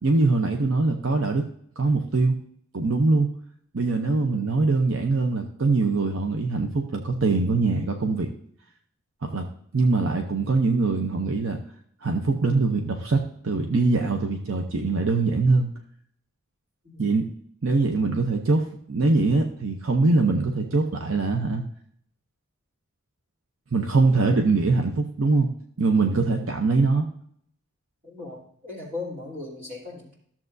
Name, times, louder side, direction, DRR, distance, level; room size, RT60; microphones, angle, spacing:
voice 1, 0.0-1.4 1.8-2.4 2.7-3.3 3.7-8.3 9.2-11.6 12.0-15.7 17.0-17.3 17.6-21.6 23.7-25.5 25.8-27.1, right 3 dB, 65° right, 4 dB, 0.7 m, -23 dB
voice 2, 28.0-30.1, left 3 dB, 40° right, -6 dB, 3.2 m, -38 dB
13.0 x 7.2 x 2.6 m, 0.66 s
head